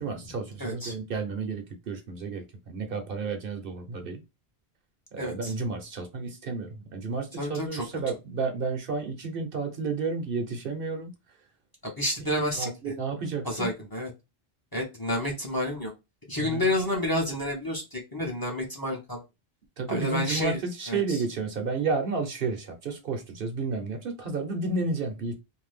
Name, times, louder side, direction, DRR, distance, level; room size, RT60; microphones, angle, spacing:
voice 1, 0.0-4.2 5.1-11.4 12.4-13.7 16.4-16.8 19.8-25.4, right 4 dB, 65° right, 0.9 m, -32 dB
voice 2, 0.6-0.9 5.2-5.5 7.4-7.8 11.8-12.7 13.4-14.1 14.7-15.9 16.3-19.2 19.9-20.6 20.9-21.2, left 1 dB, 25° left, 0.7 m, -29 dB
2.7 x 2.2 x 3.3 m
omnidirectional pair, 1.0 m